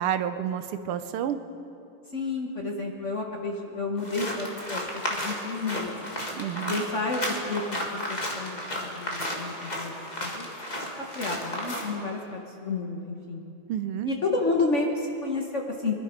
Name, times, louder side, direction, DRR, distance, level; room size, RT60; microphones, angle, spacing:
voice 1, 0.0-1.4 6.4-6.8 13.7-14.1, right 9 dB, 85° right, 10 dB, 1.7 m, -29 dB
voice 2, 2.1-6.1 6.7-10.0 10.2-10.5 11.1-13.4 14.0-16.0, left 3 dB, 45° left, 1 dB, 1.1 m, -31 dB
sound 1, 4.0-11.9, left 1 dB, 20° left, 1.7 m, -33 dB
22.5 x 12.0 x 5.1 m, 2.7 s
omnidirectional pair, 2.4 m